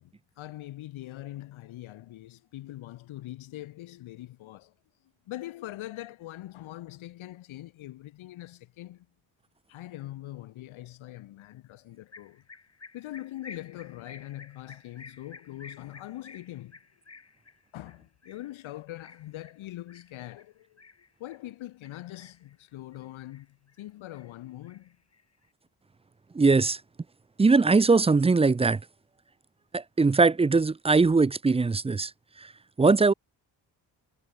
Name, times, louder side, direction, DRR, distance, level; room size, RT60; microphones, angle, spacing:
voice 1, 0.0-4.7 5.3-9.1 9.7-12.4 12.9-16.8 17.7-20.8 21.2-25.0, left 15 dB, 85° left, 2.9 m, -42 dB
sound 1, 12.1-21.5 21.8-22.5 22.9-23.8 24.1-25.5, left 4 dB, 30° left, 3.1 m, -52 dB
voice 2, 26.3-26.8 27.4-28.8 29.7-32.1 32.8-33.1, right 4 dB, 15° right, 0.4 m, -21 dB
supercardioid pair, 50°, 47 cm